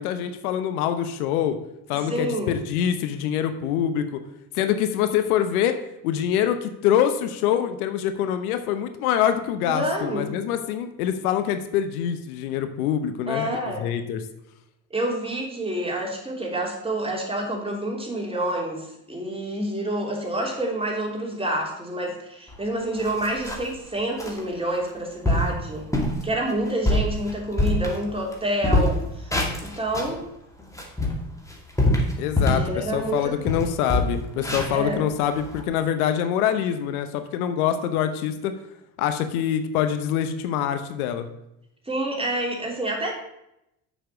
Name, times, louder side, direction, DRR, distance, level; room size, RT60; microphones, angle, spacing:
voice 1, 0.0-1.6 1.9-4.1 4.5-5.8 6.0-14.2 32.2-38.5 39.0-41.3, left 9 dB, 85° left, 9 dB, 0.9 m, -25 dB
voice 2, 1.9-2.5 9.6-10.3 13.3-13.9 14.9-25.9 26.2-30.2 32.4-33.4 34.7-35.1 41.8-43.1, right 1 dB, 15° right, -1 dB, 3.1 m, -28 dB
sound 1, 22.5-22.6 23.0-23.8 24.2-24.4 24.9-25.0 25.2-25.5 25.9-26.2 26.6-28.3 28.6-30.2 30.6-32.7 33.1-33.2 33.5-35.6, left 1 dB, 5° left, 2.4 m, -24 dB
7.1 x 5.6 x 6.6 m, 0.83 s
hypercardioid pair, 65°, 43 cm